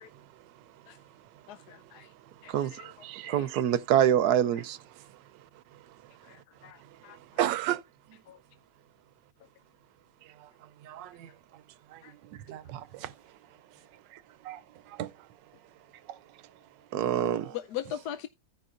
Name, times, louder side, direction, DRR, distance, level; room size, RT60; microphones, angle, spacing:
voice 1, 0.1-3.6 4.9-8.2 10.2-11.6 11.9-15.7 16.0-16.9 17.1-17.6, right 13 dB, 90° right, 1.3 m, -40 dB
voice 2, 1.5-2.1 2.4-2.9 3.2-3.5 6.3-7.2 8.3-8.4 12.0-12.1 17.5-18.3, left 11 dB, 70° left, 1.1 m, -40 dB
voice 3, 3.3-4.8 16.9-17.5, right 10 dB, 70° right, 1.1 m, -25 dB
16.0 x 5.4 x 2.5 m
omnidirectional pair, 1.9 m